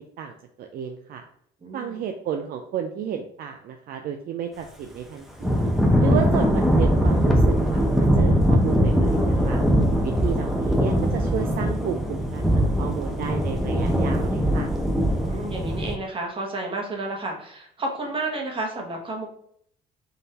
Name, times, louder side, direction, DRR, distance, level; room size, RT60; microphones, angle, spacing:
voice 1, 0.2-1.2 1.7-5.7 6.0-9.6 10.0-14.7, right 8 dB, 60° right, 4 dB, 0.4 m, -32 dB
voice 2, 1.6-2.0 15.1-19.3, right 2 dB, 30° right, 1 dB, 1.1 m, -31 dB
Thunder / Rain, 5.4-16.0, equal, ahead, 0.7 m, -21 dB
3.9 x 2.5 x 4.0 m, 0.67 s
cardioid pair, 110°, 17 cm